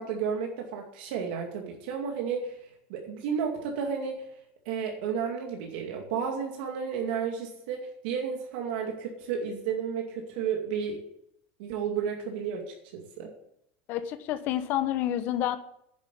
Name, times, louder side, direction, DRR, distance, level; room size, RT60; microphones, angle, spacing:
voice 1, 0.0-2.6 2.9-4.2 4.7-11.0 11.6-13.3, right 6 dB, 70° right, 1 dB, 2.3 m, -32 dB
voice 2, 13.9-15.6, left 12 dB, 40° left, 11 dB, 1.1 m, -29 dB
10.5 x 7.7 x 8.4 m, 0.76 s
cardioid pair, 170°, 5 cm